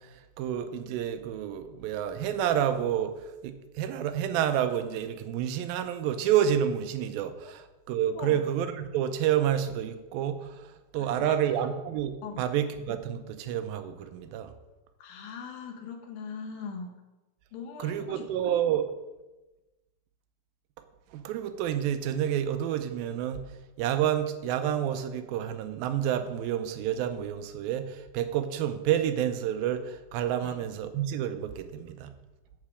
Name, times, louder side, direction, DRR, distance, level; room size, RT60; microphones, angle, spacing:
voice 1, 0.0-14.5 17.8-18.9 21.1-23.4 23.8-32.1, right 10 dB, 85° right, 9 dB, 2.4 m, -29 dB
voice 2, 11.0-11.4 12.2-12.5 15.0-16.9 17.5-18.2 30.4-30.6, left 5 dB, 80° left, 3 dB, 2.9 m, -40 dB
8.5 x 7.4 x 4.9 m, 1.1 s
omnidirectional pair, 4.2 m